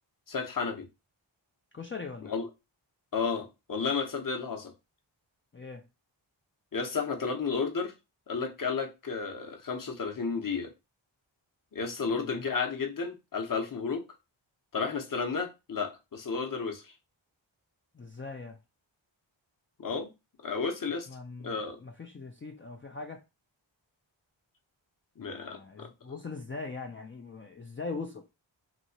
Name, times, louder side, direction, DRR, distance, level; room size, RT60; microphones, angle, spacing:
voice 1, 0.3-0.9 2.3-2.5 3.1-4.7 6.7-7.9 8.3-10.7 11.7-14.0 14.7-16.9 19.8-20.1 20.4-21.1 21.4-21.8 25.2-25.9, left 5 dB, 45° left, 0.8 m, -32 dB
voice 2, 1.7-2.3 5.5-5.8 12.0-12.4 17.9-18.6 21.1-23.2 25.2-28.3, left 4 dB, 25° left, 0.4 m, -41 dB
3.0 x 2.8 x 2.7 m
cardioid pair, 45°, 48 cm